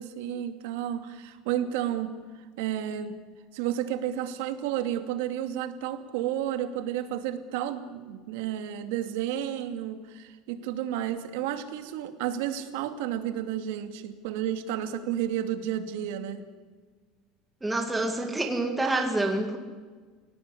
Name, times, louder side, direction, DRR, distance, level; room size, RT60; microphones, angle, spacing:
voice 1, 0.0-2.2 2.6-3.2 3.5-16.5, right 11 dB, 80° right, 8 dB, 2.5 m, -31 dB
voice 2, 17.6-19.6, right 2 dB, 5° right, 3 dB, 2.0 m, -27 dB
27.5 x 17.5 x 10.0 m, 1.5 s
cardioid pair, 175°, 0 cm